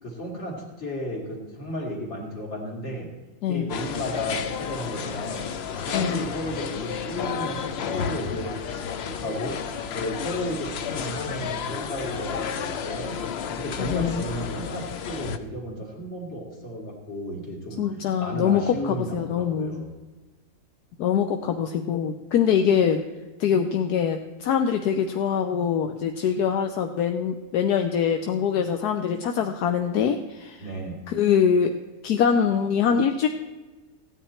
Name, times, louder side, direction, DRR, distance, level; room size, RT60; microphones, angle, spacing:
voice 1, 0.0-3.1 3.5-5.5 5.8-9.7 9.9-13.2 13.6-17.8 18.2-19.9 30.6-31.0, equal, 45° left, -1 dB, 2.7 m, -33 dB
sound 1, 3.7-15.4, left 7 dB, 60° left, 0.6 m, -32 dB
voice 2, 13.7-14.2 17.8-19.8 21.0-23.0 23.4-30.6 31.1-31.8 32.0-33.3, left 7 dB, 80° left, 6 dB, 1.2 m, -23 dB
15.0 x 9.5 x 4.4 m, 1.2 s
omnidirectional pair, 1.7 m